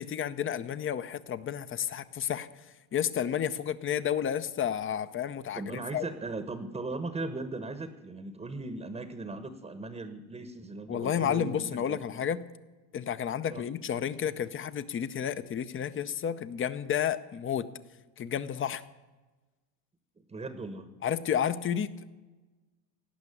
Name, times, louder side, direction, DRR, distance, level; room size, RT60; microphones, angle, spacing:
voice 1, 0.0-2.5 2.9-6.1 10.9-12.4 12.9-17.7 18.2-18.8 21.0-21.9, left 9 dB, 25° left, 15 dB, 0.7 m, -31 dB
voice 2, 5.5-12.0 13.5-13.7 20.2-20.9, right 3 dB, 15° right, 10 dB, 1.0 m, -38 dB
17.5 x 5.9 x 9.9 m, 1.2 s
supercardioid pair, 115°, 48 cm